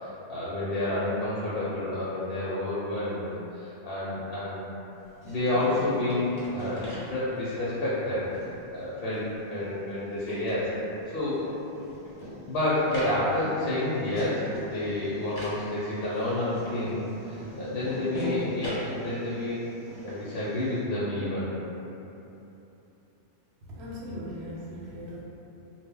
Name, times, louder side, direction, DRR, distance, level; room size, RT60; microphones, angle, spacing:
voice 1, 0.0-4.6 5.2-8.2 8.7-9.2 9.5-10.7 11.1-11.4 12.5-19.6 20.0-21.5, left 1 dB, 65° left, -9 dB, 0.7 m, -29 dB
sound 1, 5.0-7.7 8.0-9.9 10.2-20.8, equal, 35° left, 0.3 m, -41 dB
voice 2, 23.7-25.2, equal, 70° right, -6 dB, 0.9 m, -39 dB
2.1 x 2.0 x 3.5 m, 3.0 s
omnidirectional pair, 1.2 m